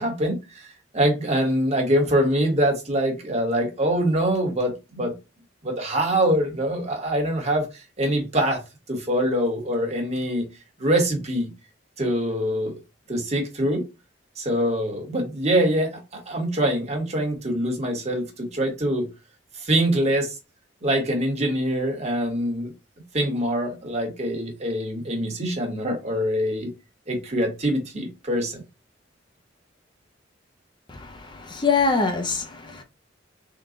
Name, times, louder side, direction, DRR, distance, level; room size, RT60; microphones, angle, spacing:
voice 1, 0.0-5.1 5.6-8.6 8.9-10.4 10.8-11.5 12.0-12.7 13.1-13.8 14.4-19.1 19.6-20.3 20.8-22.7 23.1-26.7 27.1-28.6, right 1 dB, 35° right, 1.1 m, -24 dB
voice 2, 30.9-32.8, left 4 dB, 25° left, 0.6 m, -24 dB
3.7 x 2.3 x 3.7 m
head